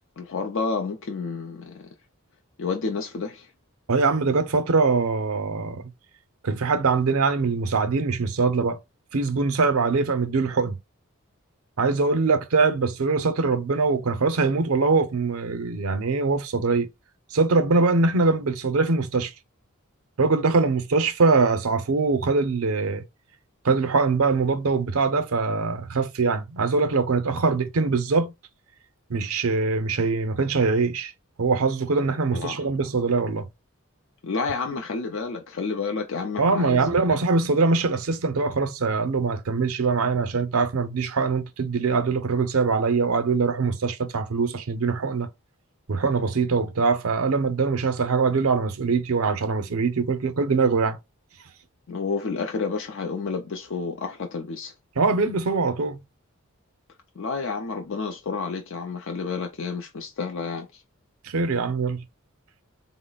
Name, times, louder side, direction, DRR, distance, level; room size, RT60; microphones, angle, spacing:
voice 1, 0.2-1.9 2.6-3.5 32.3-32.7 34.2-37.1 51.9-54.7 57.2-60.8, left 4 dB, 60° left, 0.5 m, -30 dB
voice 2, 3.9-5.8 6.4-8.8 9.1-10.8 11.8-16.9 17.3-19.3 20.2-23.0 23.6-28.3 29.1-31.1 31.4-33.5 36.4-45.3 45.9-51.0 55.0-56.0 61.2-62.0, right 4 dB, 75° right, 0.6 m, -23 dB
3.9 x 2.0 x 3.8 m
head